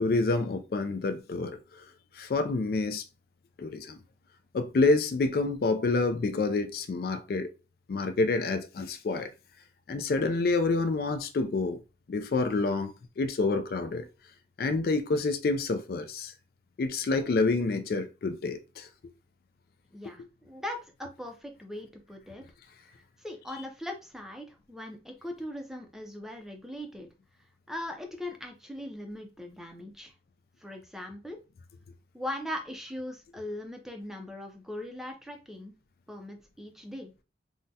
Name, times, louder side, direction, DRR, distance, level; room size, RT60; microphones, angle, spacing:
voice 1, 0.0-1.9 2.1-3.0 3.6-4.0 4.5-7.5 7.9-9.3 9.9-11.8 12.1-14.1 14.6-16.3 16.8-18.9 20.0-20.1, left 3 dB, 55° left, 0.4 m, -28 dB
voice 2, 19.9-22.4 23.2-27.1 27.7-30.1 30.6-31.4 32.1-35.7 36.1-37.1, left 1 dB, ahead, 0.5 m, -40 dB
3.7 x 2.0 x 2.7 m
head